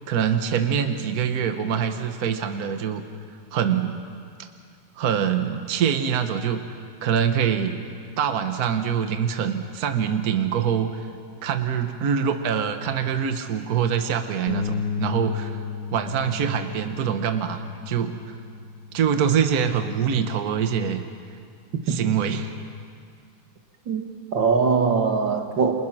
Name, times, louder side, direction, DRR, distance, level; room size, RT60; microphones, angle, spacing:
voice 1, 0.1-3.0 3.5-4.0 5.0-7.8 8.2-11.0 11.4-15.6 15.9-18.4 18.9-21.0 21.9-22.5, right 7 dB, 55° right, 7 dB, 1.5 m, -24 dB
Bass guitar, 14.5-20.7, left 6 dB, 45° left, 2.0 m, -34 dB
voice 2, 23.9-25.7, right 5 dB, 80° right, 4 dB, 2.6 m, -22 dB
30.0 x 27.0 x 6.1 m, 2.2 s
omnidirectional pair, 2.0 m